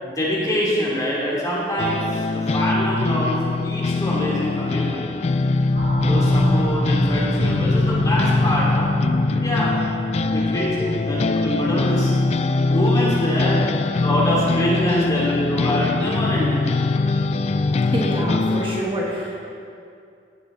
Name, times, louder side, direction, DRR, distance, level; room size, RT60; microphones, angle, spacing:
voice 1, 0.0-5.2 6.0-8.9 9.3-9.8 10.3-12.1 12.7-13.6 14.0-16.6, equal, 20° left, -5 dB, 2.8 m, -25 dB
sound 1, 1.8-18.8, left 3 dB, 35° left, 0.3 m, -22 dB
sound 2, 5.7-12.1, right 1 dB, 65° right, 2.8 m, -28 dB
voice 2, 17.9-19.4, right 1 dB, 30° right, -4 dB, 1.4 m, -26 dB
17.0 x 7.4 x 3.9 m, 2.4 s
head